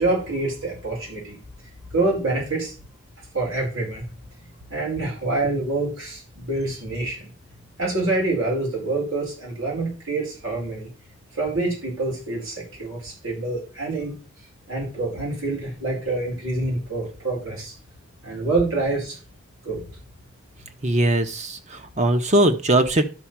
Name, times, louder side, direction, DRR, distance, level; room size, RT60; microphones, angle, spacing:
voice 1, 0.0-1.4 1.9-2.7 3.3-4.0 4.7-7.3 7.8-10.9 11.3-14.1 14.7-17.7 18.2-19.2 19.6-19.8, right 2 dB, 85° right, -3 dB, 5.1 m, -26 dB
voice 2, 20.8-23.1, right 1 dB, 35° right, 8 dB, 1.1 m, -20 dB
12.0 x 4.3 x 6.1 m, 0.36 s
head